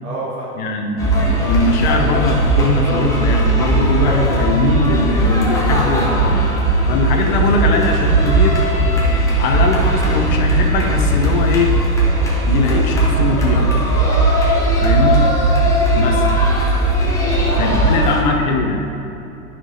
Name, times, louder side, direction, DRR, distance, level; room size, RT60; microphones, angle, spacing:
voice 1, 0.0-0.6 17.1-18.2, right 1 dB, 15° right, -5 dB, 0.5 m, -29 dB
voice 2, 0.6-6.5 6.9-8.6 9.4-11.7 12.5-13.7 14.8-15.2 15.9-16.2 17.6-18.9, left 3 dB, 30° left, 2 dB, 0.8 m, -20 dB
sound 1, 1.0-18.2, right 2 dB, 5° left, 1.1 m, -17 dB
11.5 x 6.0 x 2.8 m, 2.9 s
figure-of-eight pair, 110°, 46 cm